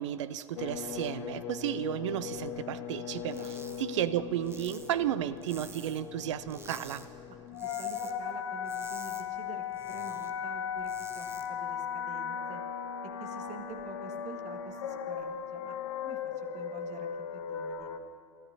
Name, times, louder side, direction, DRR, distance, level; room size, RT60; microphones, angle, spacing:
voice 1, 0.0-3.4 3.8-7.0, right 11 dB, 70° right, 15 dB, 0.6 m, -33 dB
sound 1, 0.6-18.0, left 8 dB, 70° left, 0.8 m, -38 dB
sound 2, 3.2-3.8 4.1-6.1 6.5-7.1 7.4-8.1 8.4-10.3 10.7-11.5, right 3 dB, 15° right, 1.3 m, -50 dB
voice 2, 7.3-12.6 13.2-17.9, right 5 dB, 45° right, 6 dB, 1.7 m, -48 dB
30.0 x 14.0 x 2.8 m, 2.8 s
figure-of-eight pair, 65°, 16 cm